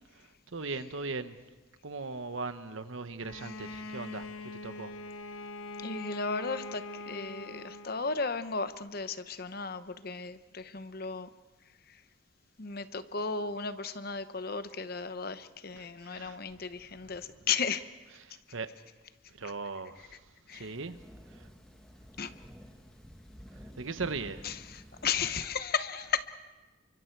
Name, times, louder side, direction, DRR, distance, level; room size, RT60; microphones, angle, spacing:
voice 1, 0.5-1.4 1.8-4.3 4.6-4.9 15.7-16.4 17.0-17.1 18.1-18.7 19.4-20.2 20.5-20.9 21.4-21.5 23.8-24.4 26.0-26.1, right 4 dB, 70° right, 10 dB, 1.1 m, -38 dB
Bowed string instrument, 3.2-8.3, left 2 dB, 80° left, 0.9 m, -43 dB
voice 2, 5.8-11.3 12.6-17.8 20.5-20.7 22.2-22.3 24.4-26.3, left 5 dB, 45° left, 12 dB, 0.8 m, -35 dB
Thunder, 20.5-25.5, equal, 5° left, 1.5 m, -51 dB
30.0 x 24.5 x 4.6 m, 1.2 s
head